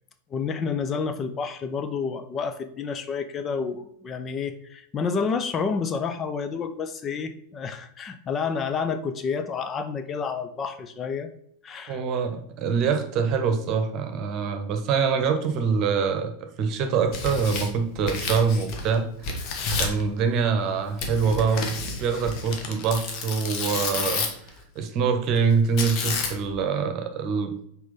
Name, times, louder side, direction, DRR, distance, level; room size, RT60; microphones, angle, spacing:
voice 1, 0.3-11.3 11.6-12.0, left 5 dB, 25° left, 8 dB, 0.6 m, -29 dB
voice 2, 11.9-16.3 16.6-19.3 19.8-21.7 22.0-24.2 24.7-27.6, right 6 dB, 35° right, 6 dB, 1.2 m, -24 dB
Tearing, 16.9-19.0 19.2-20.0 21.0-24.5 25.8-26.6, left 4 dB, 40° left, 1.5 m, -30 dB
6.4 x 4.5 x 5.3 m, 0.69 s
figure-of-eight pair, 90°, 0 cm